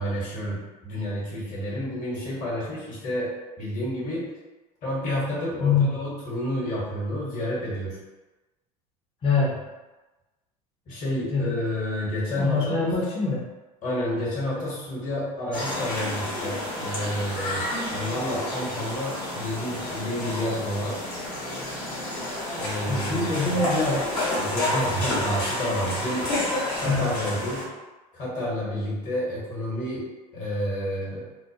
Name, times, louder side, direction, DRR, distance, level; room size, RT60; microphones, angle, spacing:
voice 1, 0.0-4.3 4.8-8.0 10.9-12.8 13.8-17.6 17.9-21.0 22.5-23.6 24.4-26.3 26.8-27.7 28.1-31.2, equal, 40° left, -6 dB, 1.2 m, -30 dB
voice 2, 5.6-5.9 9.2-9.6 11.3-11.6 12.4-13.4 22.9-24.0 26.8-27.1, left 4 dB, 25° left, -4 dB, 0.7 m, -24 dB
sound 1, 15.5-27.6, left 1 dB, 60° left, 1.1 m, -30 dB
2.5 x 2.1 x 2.7 m, 1.1 s
hypercardioid pair, 85°, 20 cm